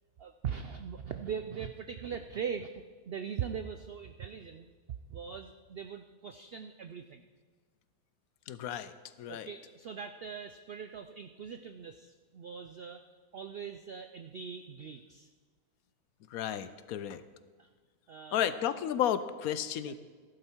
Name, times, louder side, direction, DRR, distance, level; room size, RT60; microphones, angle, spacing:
voice 1, 0.2-4.7 5.1-7.2 9.3-13.0 13.3-15.3 17.6-17.7 18.1-18.6 19.8-19.9, right 7 dB, 75° right, 9 dB, 0.5 m, -41 dB
voice 2, 8.5-9.5 16.3-17.2 18.3-19.9, left 10 dB, 75° left, 14 dB, 1.0 m, -33 dB
14.5 x 11.5 x 4.5 m, 1.5 s
omnidirectional pair, 1.6 m